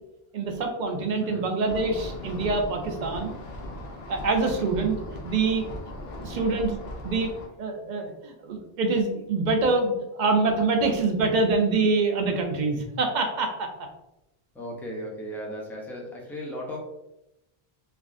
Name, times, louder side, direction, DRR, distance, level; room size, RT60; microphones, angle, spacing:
voice 1, 0.3-3.3 4.1-4.9 5.2-5.7 6.2-6.8 7.0-7.3 7.6-13.7, right 3 dB, 55° right, 3 dB, 0.6 m, -25 dB
voice 2, 1.2-1.5 6.2-6.5 14.5-16.8, equal, 5° left, -2 dB, 0.4 m, -36 dB
sound 1, 1.7-7.5, left 1 dB, 70° left, 0.9 m, -38 dB
3.3 x 2.4 x 2.5 m, 0.89 s
omnidirectional pair, 1.1 m